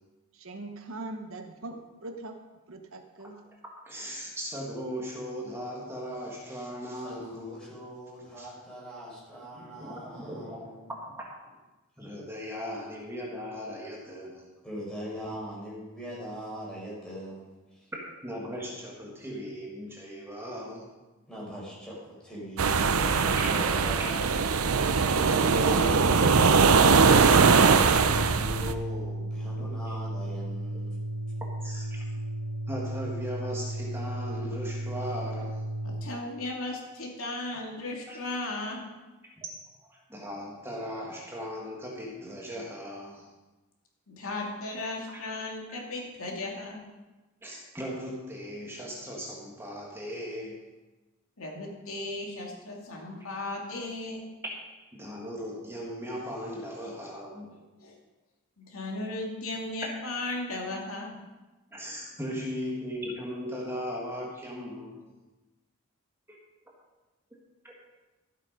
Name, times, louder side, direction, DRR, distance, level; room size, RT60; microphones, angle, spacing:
voice 1, 0.3-2.4 2.7-3.4, right 2 dB, 70° right, 6 dB, 1.1 m, -41 dB
voice 2, 3.8-7.6 8.4-8.5 9.6-10.7 11.0-11.3 12.0-14.4 18.2-20.9 23.4-23.5 25.1-27.8 29.6-29.9 31.6-32.1 32.7-35.6 38.1-38.2 39.9-43.3 45.1-45.2 45.7-45.8 47.4-50.6 54.8-57.5 61.7-65.1 67.6-67.7, equal, 10° right, -3 dB, 1.8 m, -38 dB
voice 3, 7.0-10.9 14.6-17.9 21.3-24.3 28.2-31.0, equal, 5° left, -6 dB, 4.9 m, -41 dB
sound 1, 22.6-28.7, right 5 dB, 85° right, 0.7 m, -21 dB
Organ, 25.9-36.2, right 1 dB, 50° right, 1.2 m, -34 dB
voice 4, 35.8-38.9 44.1-46.8 51.4-54.2 57.8-58.0 58.6-61.1, left 2 dB, 75° left, -1 dB, 2.7 m, -36 dB
14.0 x 8.2 x 5.3 m, 1.1 s
head